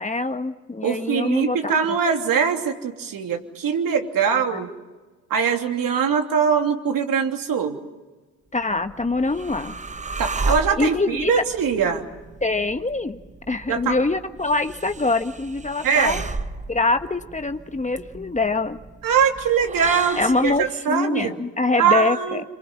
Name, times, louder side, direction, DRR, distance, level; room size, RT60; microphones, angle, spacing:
voice 1, 0.0-1.7 4.3-4.6 8.5-9.8 10.8-11.3 12.4-16.2 16.7-18.8 20.2-22.4, left 3 dB, 20° left, 8 dB, 1.4 m, -24 dB
voice 2, 0.8-4.7 5.3-7.8 10.2-12.0 13.7-13.9 15.8-16.2 19.0-21.3 21.8-22.4, right 6 dB, 60° right, 4 dB, 3.1 m, -22 dB
sound 1, 8.6-20.7, right 3 dB, 20° right, 1.0 m, -34 dB
26.5 x 24.0 x 7.4 m, 1.2 s
hypercardioid pair, 55°, 38 cm